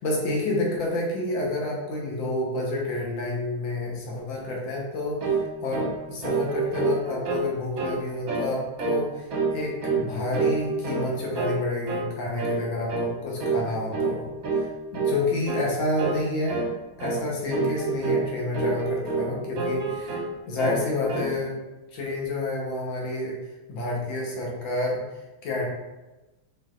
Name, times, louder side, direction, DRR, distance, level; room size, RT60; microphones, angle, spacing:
voice 1, 0.0-5.2 5.6-9.3 9.5-14.3 14.6-14.7 14.9-16.7 17.0-20.2 20.5-21.6 21.9-23.4 23.7-25.0 25.4-25.7, left 2 dB, 65° left, -2 dB, 1.7 m, -29 dB
sound 1, 5.2-5.5 5.7-6.0 6.2-7.5 7.8-8.0 8.3-8.5 8.8-9.0 9.3-10.1 10.3-11.1 11.3-11.6 11.9-12.1 12.4-12.6 12.9-13.1 13.4-13.7 13.9-14.1 14.4-14.7 14.9-15.2 15.5-15.7 16.0-16.2 16.5-16.7 17.0-17.2 17.5-18.3 18.5-19.3 19.6-20.3 20.6-21.3, right 4 dB, 55° right, 1.0 m, -27 dB
4.6 x 4.4 x 2.4 m, 1.1 s
omnidirectional pair, 2.4 m